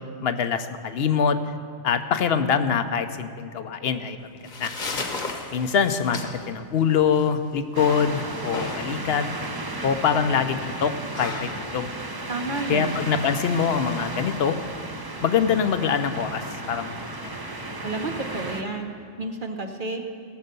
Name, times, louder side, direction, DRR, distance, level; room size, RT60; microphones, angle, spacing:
voice 1, 0.2-1.4 1.8-4.3 4.6-4.7 5.5-9.2 9.8-11.9 12.7-14.6 15.2-16.9 17.2-17.3, left 7 dB, 65° left, 10 dB, 0.9 m, -24 dB
sound 1, 4.2-13.2, left 3 dB, 45° left, 1.1 m, -37 dB
sound 2, 7.7-18.6, right 2 dB, 25° right, 0.7 m, -34 dB
voice 2, 12.3-13.1 17.8-18.9 19.2-20.0, right 2 dB, 50° right, 3 dB, 1.0 m, -30 dB
17.5 x 6.5 x 6.7 m, 2.4 s
omnidirectional pair, 1.2 m